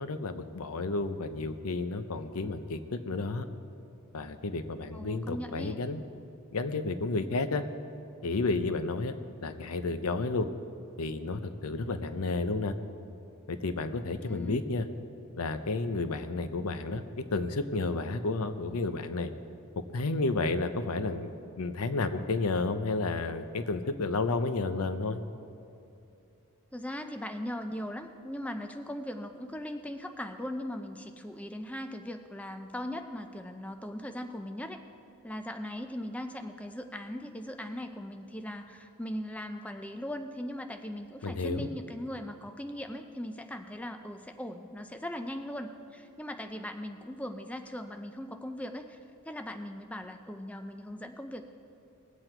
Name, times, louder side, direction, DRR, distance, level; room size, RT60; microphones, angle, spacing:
voice 1, 0.0-3.4 4.1-6.0 6.5-7.7 8.2-9.1 9.4-10.5 11.0-12.8 13.5-14.9 15.3-19.3 19.9-21.3 21.6-25.2 41.2-41.7, left 3 dB, 80° left, 10 dB, 0.7 m, -31 dB
voice 2, 4.9-5.8 14.3-14.6 26.7-34.8 35.2-49.0 49.2-51.4, left 1 dB, 5° left, 6 dB, 0.4 m, -39 dB
20.0 x 7.9 x 4.5 m, 2.7 s
head